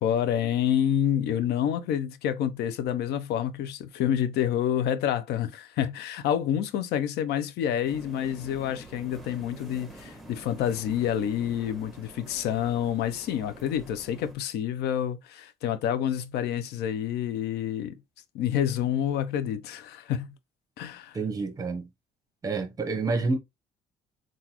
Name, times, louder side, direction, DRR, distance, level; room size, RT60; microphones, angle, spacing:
voice 1, 0.0-17.9 18.3-20.3 20.8-21.2, left 10 dB, 75° left, 0.5 m, -28 dB
sound 1, 7.8-14.3, right 1 dB, ahead, 1.1 m, -47 dB
voice 2, 21.1-21.9 22.4-23.4, right 3 dB, 20° right, 0.9 m, -28 dB
3.8 x 2.4 x 2.9 m
cardioid pair, 110°, 17 cm